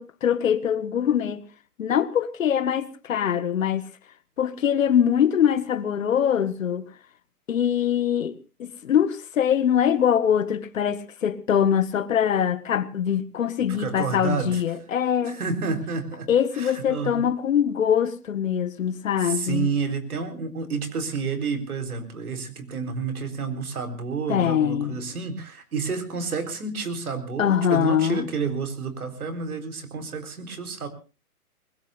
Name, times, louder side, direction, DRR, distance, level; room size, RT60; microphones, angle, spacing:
voice 1, 0.0-1.4 1.8-3.8 4.4-6.9 7.5-8.3 8.6-15.4 16.3-19.7 24.3-25.0 27.4-28.3, left 9 dB, 60° left, 1.5 m, -23 dB
voice 2, 13.7-14.6 15.2-17.3 19.2-30.9, right 5 dB, 70° right, 4.1 m, -30 dB
24.0 x 21.0 x 2.5 m
hypercardioid pair, 155°, 45 cm